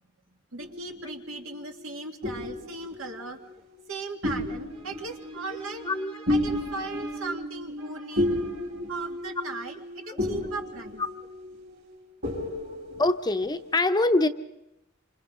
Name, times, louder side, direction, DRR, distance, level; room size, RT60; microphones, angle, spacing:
voice 1, 0.5-3.4 3.9-11.0, right 3 dB, 85° right, 3 dB, 2.1 m, -38 dB
sound 1, 0.6-1.6 2.2-3.9 4.2-13.8, left 1 dB, 55° right, 4.6 m, -33 dB
voice 2, 5.8-6.2 7.2-7.3 10.1-10.2 13.0-14.3, left 2 dB, 20° left, 9 dB, 0.7 m, -24 dB
28.0 x 26.5 x 3.8 m, 0.89 s
head